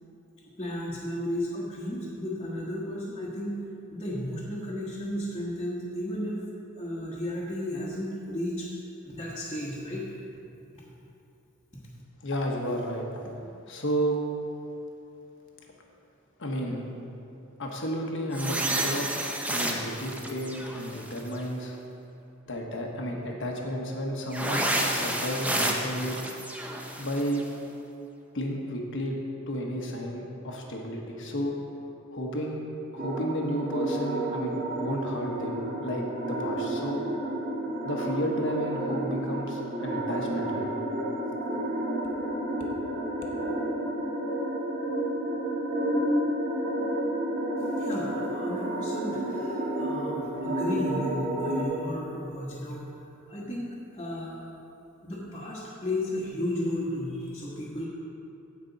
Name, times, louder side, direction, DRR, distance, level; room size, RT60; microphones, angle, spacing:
voice 1, 0.5-3.6 3.9-6.4 6.7-8.7 9.0-10.1 10.7-10.8 47.6-52.8 53.3-54.4 55.0-57.9, left 1 dB, 25° left, -8 dB, 1.3 m, -34 dB
voice 2, 12.2-13.0 13.4-14.2 16.4-16.8 17.6-19.2 19.5-21.8 22.5-26.2 27.0-27.4 28.3-29.2 29.5-31.6 32.1-32.6 32.9-37.0 37.8-40.7, equal, 65° left, 0 dB, 1.3 m, -32 dB
sound 1, 18.3-21.4 24.3-27.4, right 1 dB, 5° right, 0.7 m, -30 dB
sound 2, 33.0-51.6, right 1 dB, 45° right, 2.4 m, -30 dB
16.0 x 5.4 x 4.0 m, 2.8 s
head